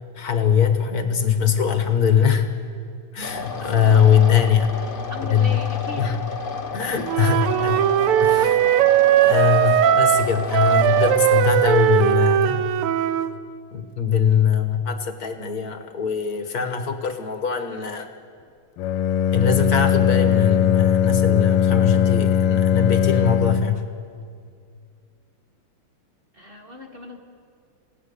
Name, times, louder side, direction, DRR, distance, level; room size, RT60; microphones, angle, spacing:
voice 1, 0.2-2.5 3.1-4.7 5.3-5.6 6.0-6.2 6.7-7.8 8.2-8.7 9.2-12.6 13.7-18.1 19.3-23.8, left 7 dB, 50° left, 7 dB, 1.6 m, -21 dB
sound 1, 3.2-12.2, left 3 dB, 30° left, 1.1 m, -32 dB
voice 2, 5.1-6.1 7.4-7.8 9.8-10.0 26.3-27.2, left 1 dB, 25° right, 3 dB, 1.8 m, -38 dB
Wind instrument woodwind instrument, 7.1-13.3, right 10 dB, 85° right, 1.7 m, -18 dB
Bowed string instrument, 18.8-23.9, left 8 dB, 85° left, 1.6 m, -19 dB
27.5 x 17.5 x 6.8 m, 2.2 s
omnidirectional pair, 2.4 m